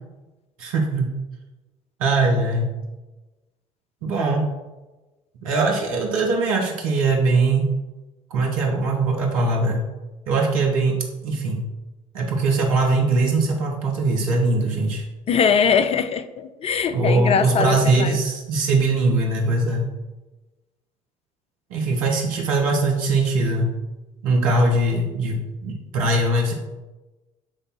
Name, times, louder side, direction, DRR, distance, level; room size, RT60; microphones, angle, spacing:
voice 1, 0.6-1.1 2.0-2.7 4.0-4.5 5.4-7.7 8.3-9.8 10.3-11.7 12.1-15.0 16.9-19.9 21.7-23.7 24.2-26.5, right 2 dB, 75° right, 0 dB, 1.5 m, -21 dB
voice 2, 15.3-18.2, left 6 dB, 35° left, 11 dB, 0.6 m, -21 dB
7.0 x 3.5 x 5.7 m, 1.1 s
figure-of-eight pair, 60°, 18 cm